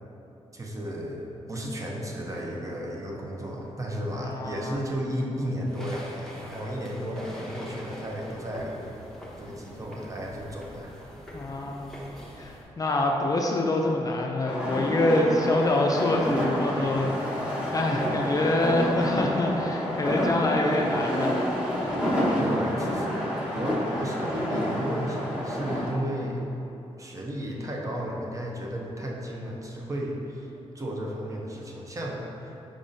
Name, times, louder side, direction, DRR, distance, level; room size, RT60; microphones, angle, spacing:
voice 1, 0.5-10.9 22.3-26.5 27.0-32.2, equal, 30° right, -2 dB, 0.6 m, -34 dB
voice 2, 4.2-4.8 11.3-12.0 12.4-17.1 17.7-21.4, left 2 dB, 30° left, 0 dB, 0.4 m, -25 dB
sound 1, 5.7-12.6, equal, 5° left, 0.8 m, -43 dB
sound 2, 14.5-25.9, equal, 10° right, 1.2 m, -28 dB
5.0 x 3.6 x 2.6 m, 3.0 s
cardioid pair, 90°, 11 cm